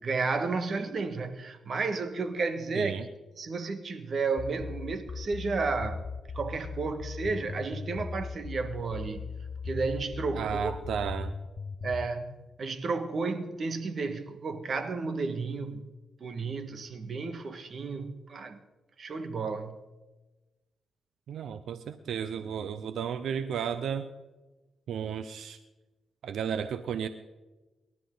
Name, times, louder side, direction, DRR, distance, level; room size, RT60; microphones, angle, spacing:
voice 1, 0.0-3.0 3.4-6.1 6.3-9.3 9.6-10.7 11.8-15.8 16.2-18.6 19.0-19.8, right 4 dB, 50° right, 1.8 m, -32 dB
voice 2, 2.7-3.1 10.3-11.3 21.3-24.1 24.9-25.6 26.2-27.1, right 7 dB, 80° right, 0.8 m, -33 dB
sound 1, 4.4-12.1, left 5 dB, 40° left, 0.8 m, -38 dB
27.5 x 12.5 x 3.9 m
cardioid pair, 80°, 0 cm